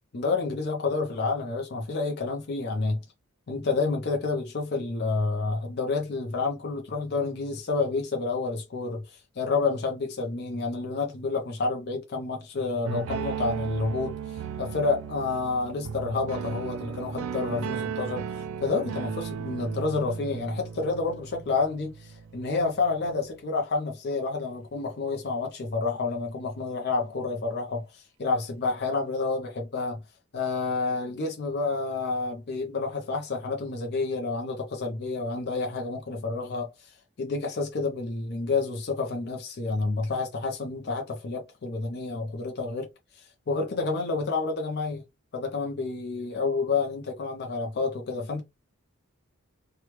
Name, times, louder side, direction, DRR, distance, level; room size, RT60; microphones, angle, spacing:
voice 1, 0.1-3.0 3.5-30.0 30.3-42.9 43.1-45.0 45.3-48.4, left 3 dB, 50° left, 0.5 m, -29 dB
sound 1, 12.9-23.3, right 7 dB, 70° right, 0.3 m, -36 dB
2.9 x 2.2 x 3.1 m
head